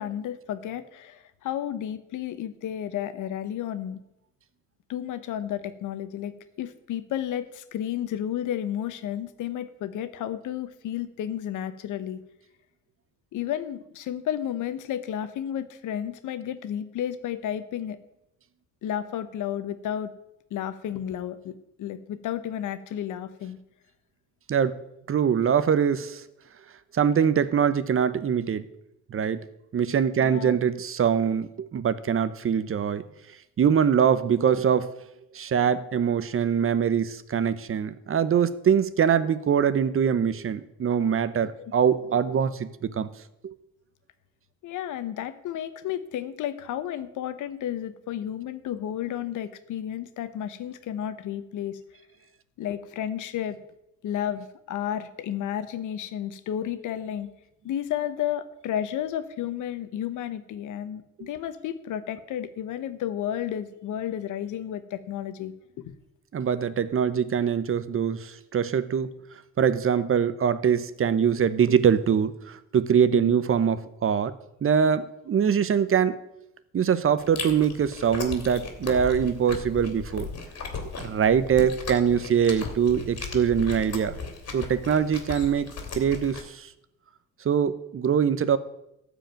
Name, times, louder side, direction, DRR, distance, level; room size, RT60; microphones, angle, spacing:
voice 1, 0.0-4.0 4.9-12.2 13.3-18.0 18.8-20.1 20.5-23.6 30.2-30.6 41.6-41.7 44.6-51.8 52.6-53.6 54.0-57.3 57.6-65.5 65.9-66.0 73.1-73.3, left 10 dB, 80° left, 12 dB, 1.0 m, -32 dB
voice 2, 25.1-26.2 26.9-28.7 29.1-29.4 29.7-33.0 33.6-34.9 35.3-43.1 43.4-43.5 66.3-69.1 69.6-74.3 74.6-76.2 76.7-80.3 81.0-84.1 84.5-85.7 86.0-86.7 87.4-88.6, right 7 dB, 45° right, 15 dB, 0.9 m, -23 dB
Chewing mastication, 77.2-86.4, left 5 dB, 55° left, 2.7 m, -37 dB
13.0 x 5.0 x 8.9 m, 0.85 s
cardioid pair, 90°, 30 cm